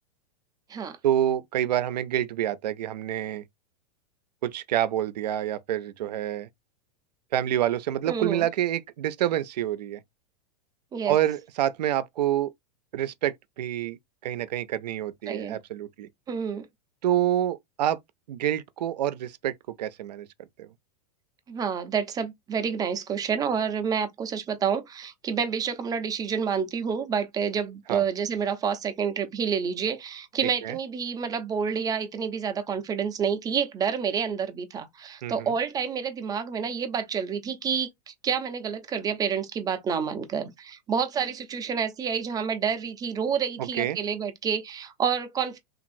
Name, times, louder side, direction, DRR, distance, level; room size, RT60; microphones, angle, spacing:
voice 1, 1.0-3.4 4.4-6.5 7.3-10.0 11.1-12.5 12.9-14.0 14.2-16.1 17.0-18.0 18.3-20.3 20.6-20.7 27.9-28.0 30.6-30.8 35.2-35.5 43.6-44.0, right 12 dB, 85° right, 0.5 m, -27 dB
voice 2, 8.1-8.5 10.9-11.1 15.3-15.6 16.3-16.7 21.5-45.6, right 7 dB, 20° right, 0.6 m, -29 dB
2.9 x 2.4 x 2.6 m
supercardioid pair, 130°, 20 cm